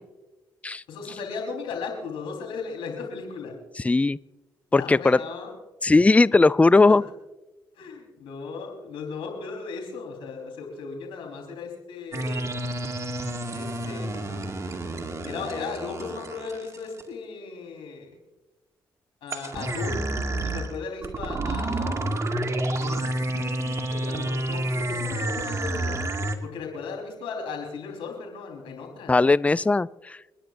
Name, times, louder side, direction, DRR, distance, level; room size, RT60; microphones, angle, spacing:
voice 1, 0.9-3.6 4.7-5.5 6.9-7.0 7.7-12.5 13.5-14.4 15.2-18.1 19.2-20.1 20.4-22.1 22.8-26.0 26.4-29.1, left 5 dB, 80° left, 2 dB, 4.1 m, -36 dB
voice 2, 3.8-4.2 4.7-5.2 5.8-7.0 29.1-30.2, left 3 dB, 15° left, 20 dB, 0.3 m, -18 dB
sound 1, 12.1-17.0 19.3-26.3, right 1 dB, 35° right, 2.1 m, -29 dB
29.5 x 10.5 x 2.6 m, 1.1 s
supercardioid pair, 55°, 9 cm